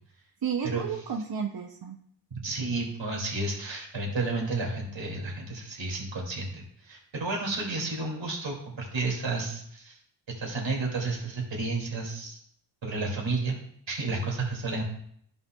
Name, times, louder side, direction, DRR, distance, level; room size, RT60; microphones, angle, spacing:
voice 1, 0.4-2.0, right 7 dB, 55° right, 2 dB, 0.7 m, -32 dB
voice 2, 2.4-10.0 10.4-12.4 12.8-13.6 13.9-14.8, right 3 dB, 70° right, -2 dB, 2.5 m, -31 dB
14.0 x 5.5 x 2.3 m, 0.66 s
wide cardioid pair, 130°, 46 cm